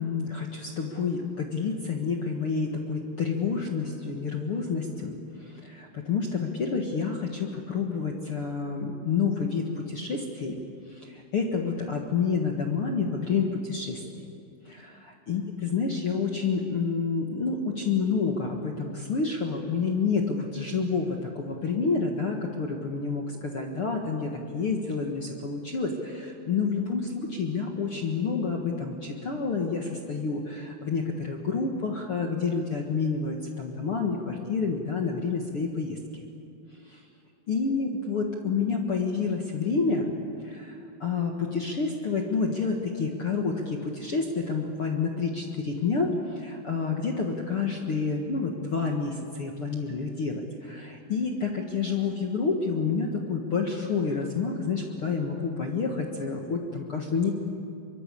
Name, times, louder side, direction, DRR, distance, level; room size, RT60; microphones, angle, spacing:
voice 1, 0.0-10.6 10.9-14.3 14.6-36.0 36.8-37.0 37.5-57.3, left 5 dB, 55° left, 1 dB, 1.5 m, -29 dB
24.0 x 23.5 x 8.5 m, 2.5 s
omnidirectional pair, 4.9 m